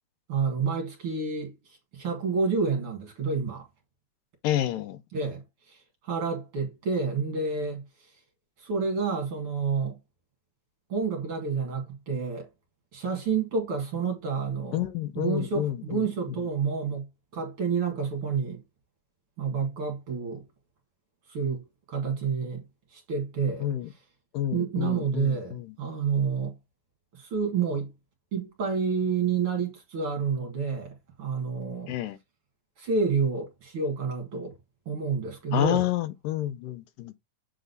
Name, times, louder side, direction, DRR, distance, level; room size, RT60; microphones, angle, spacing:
voice 1, 0.3-3.7 5.1-8.1 8.6-10.0 10.9-12.5 12.9-14.9 15.2-17.1 17.3-18.6 19.4-20.4 21.3-22.7 22.9-23.7 24.5-26.6 27.1-27.9 28.3-31.9 32.8-34.6 34.9-35.9, right 5 dB, 45° right, 2.5 m, -29 dB
voice 2, 4.4-5.0 14.7-16.0 23.6-23.9 24.3-25.7 31.9-32.2 35.5-37.1, left 13 dB, 80° left, 2.3 m, -29 dB
8.1 x 3.8 x 3.9 m
omnidirectional pair, 4.0 m